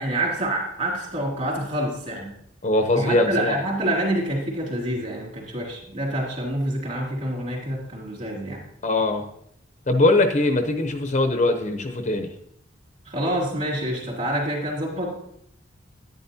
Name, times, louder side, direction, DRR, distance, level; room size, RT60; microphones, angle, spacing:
voice 1, 0.0-2.3 2.9-8.6 13.0-15.2, right 1 dB, 40° right, -2 dB, 3.1 m, -27 dB
voice 2, 2.6-3.5 8.8-9.2 9.9-12.3, left 2 dB, 40° left, 6 dB, 0.8 m, -21 dB
10.5 x 10.0 x 2.8 m, 0.71 s
head